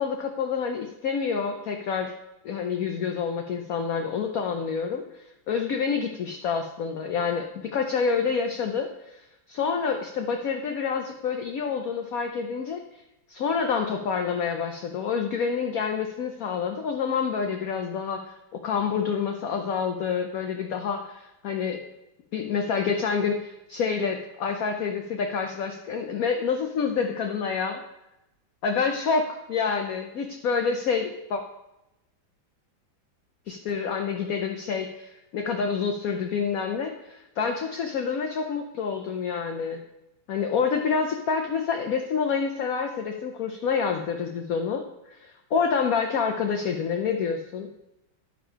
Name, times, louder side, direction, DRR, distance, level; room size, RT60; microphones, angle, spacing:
voice 1, 0.0-2.1 2.4-12.8 13.3-21.8 22.3-27.8 28.6-31.4 33.5-39.8 40.3-47.7, left 6 dB, 60° left, 4 dB, 0.9 m, -28 dB
11.0 x 5.2 x 5.6 m, 0.90 s
omnidirectional pair, 2.1 m